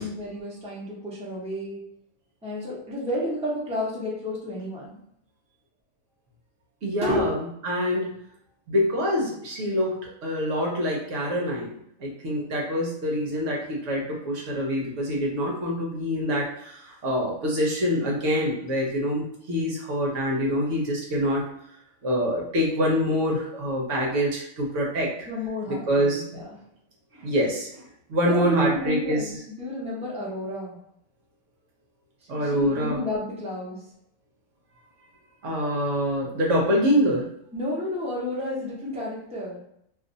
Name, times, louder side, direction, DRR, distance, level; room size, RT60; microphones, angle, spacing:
voice 1, 0.0-1.8 2.4-4.9 7.0-7.2 25.3-26.6 28.3-30.8 32.3-33.8 37.5-39.6, left 1 dB, 5° right, -5 dB, 0.7 m, -31 dB
voice 2, 6.8-7.3 7.6-8.1 8.7-21.4 22.0-25.3 25.7-26.2 27.2-27.8 28.1-29.3 32.3-33.0 35.4-37.3, equal, 60° right, -2 dB, 1.0 m, -25 dB
2.6 x 2.4 x 3.9 m, 0.72 s
omnidirectional pair, 1.5 m